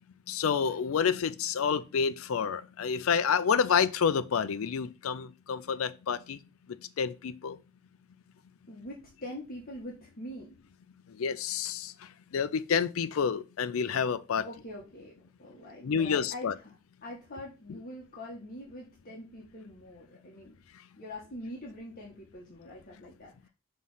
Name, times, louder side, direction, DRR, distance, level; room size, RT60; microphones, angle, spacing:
voice 1, 0.3-6.4 7.0-7.6 11.2-11.9 12.3-14.4 15.8-16.5, left 6 dB, 80° left, 0.4 m, -28 dB
voice 2, 8.7-10.6 14.4-16.7 17.0-20.6 21.0-23.5, left 1 dB, 45° left, 1.3 m, -44 dB
5.6 x 3.2 x 5.5 m
head